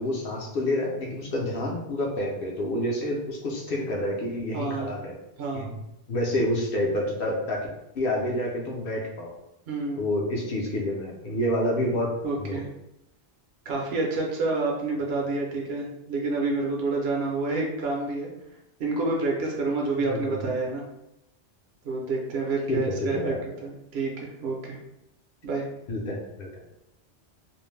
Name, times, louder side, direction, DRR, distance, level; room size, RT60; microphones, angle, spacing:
voice 1, 0.0-5.1 5.5-5.7 6.1-7.6 7.9-9.3 10.0-12.1 12.3-12.6 20.1-20.4 22.7-23.4 25.9-26.6, left 1 dB, 60° left, -2 dB, 0.7 m, -28 dB
voice 2, 4.5-5.0 5.4-5.7 9.7-10.0 12.2-12.7 13.7-18.3 18.8-20.8 21.8-23.3 23.6-24.8 25.4-25.7, right 3 dB, 65° right, -1 dB, 0.8 m, -28 dB
2.5 x 2.0 x 3.1 m, 0.86 s
omnidirectional pair, 1.2 m